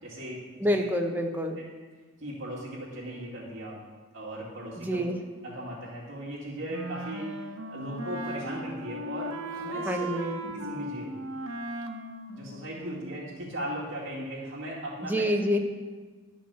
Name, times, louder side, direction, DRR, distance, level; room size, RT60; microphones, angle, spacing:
voice 1, 0.0-0.4 0.8-0.9 2.2-3.8 4.1-5.0 5.5-7.3 7.7-10.1 10.4-11.1 12.3-15.2, right 1 dB, 65° right, -6 dB, 2.2 m, -37 dB
voice 2, 0.6-1.6 4.8-5.2 9.8-10.4 15.0-15.6, equal, 10° right, 3 dB, 0.9 m, -27 dB
Wind instrument woodwind instrument, 6.7-13.3, right 1 dB, 85° right, 0.9 m, -37 dB
11.0 x 5.2 x 6.9 m, 1.4 s
head